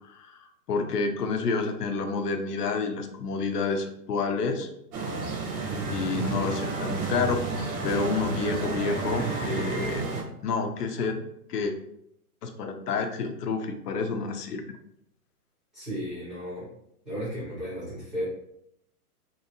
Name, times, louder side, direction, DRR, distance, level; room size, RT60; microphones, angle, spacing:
voice 1, 0.0-4.7 5.9-7.4 7.8-10.1 10.4-11.2 11.5-11.7 12.4-14.8, left 4 dB, 85° left, 5 dB, 0.7 m, -29 dB
sound 1, 4.9-10.2, right 3 dB, 70° right, 1.0 m, -31 dB
voice 2, 6.1-6.6 15.7-16.7 17.0-18.2, equal, ahead, -12 dB, 0.5 m, -34 dB
3.1 x 2.7 x 2.8 m, 0.76 s
hypercardioid pair, 160°, 46 cm